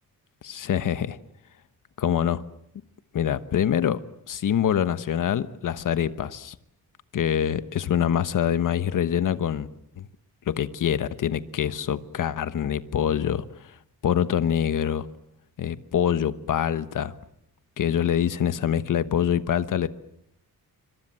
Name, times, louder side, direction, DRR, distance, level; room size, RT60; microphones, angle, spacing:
voice 1, 0.4-1.2 2.0-2.4 3.1-4.0 4.3-6.5 7.1-9.7 10.0-10.1 10.5-13.4 14.0-15.1 15.6-17.1 17.8-19.9, left 9 dB, 55° left, 1.2 m, -25 dB
26.5 x 25.5 x 7.6 m
wide cardioid pair, 165°, 37 cm